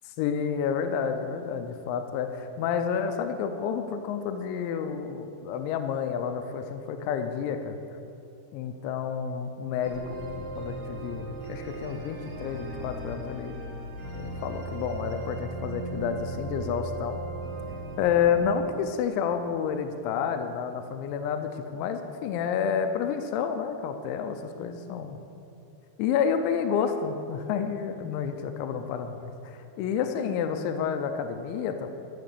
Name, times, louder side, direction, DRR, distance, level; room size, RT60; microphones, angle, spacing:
voice 1, 0.2-7.8 8.5-13.6 14.1-17.2 18.0-25.2 26.0-31.9, left 7 dB, 85° left, 7 dB, 2.9 m, -30 dB
sound 1, 9.8-18.5, right 2 dB, 60° right, 2.8 m, -37 dB
12.5 x 6.2 x 6.7 m, 2.6 s
omnidirectional pair, 5.3 m